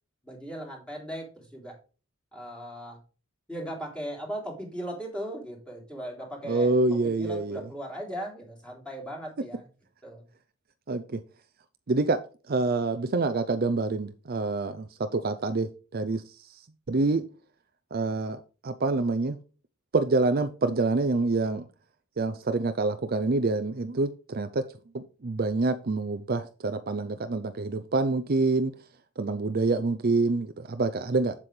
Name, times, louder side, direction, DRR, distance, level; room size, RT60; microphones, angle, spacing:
voice 1, 0.2-1.7 2.3-3.0 3.5-9.7 10.0-10.2, equal, 5° left, -2 dB, 3.4 m, -38 dB
voice 2, 6.4-7.6 10.9-11.2 11.9-12.2 12.5-16.2 16.9-17.3 17.9-18.4 18.6-19.4 19.9-21.6 22.2-24.6 24.9-28.7 29.2-31.3, right 3 dB, 45° right, 10 dB, 0.6 m, -26 dB
7.8 x 7.5 x 3.2 m, 0.35 s
head